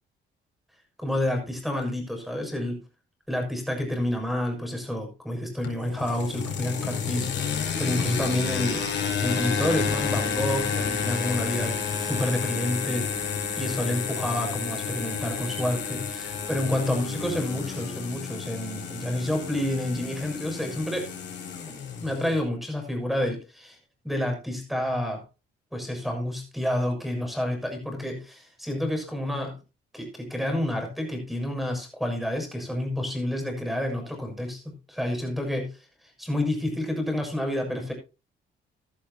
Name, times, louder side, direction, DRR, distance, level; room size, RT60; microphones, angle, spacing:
voice 1, 1.0-2.8 3.3-7.3 7.8-8.9 9.2-13.1 13.5-21.1 21.7-23.8 24.0-25.2 25.7-29.6 29.9-35.8 36.2-37.9, left 1 dB, ahead, 4 dB, 6.7 m, -29 dB
sound 1, 5.6-22.4, left 6 dB, 60° left, 5.1 m, -30 dB
16.0 x 11.5 x 2.7 m, 0.28 s
cardioid pair, 90°, 20 cm